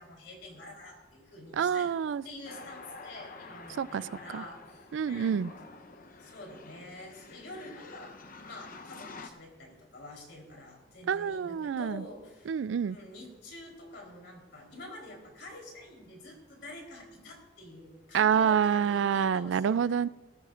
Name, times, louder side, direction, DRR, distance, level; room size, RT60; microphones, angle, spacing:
voice 1, 0.0-1.9 2.2-5.4 6.2-8.2 8.4-12.5 12.9-20.0, left 1 dB, 70° left, 0 dB, 3.8 m, -47 dB
voice 2, 1.6-2.2 3.8-4.4 4.9-5.5 11.1-12.0 12.5-13.0 18.1-20.1, right 7 dB, 80° right, 19 dB, 0.3 m, -27 dB
sound 1, 2.5-9.3, left 3 dB, 50° left, 0.8 m, -48 dB
18.5 x 14.5 x 2.5 m, 1.2 s
head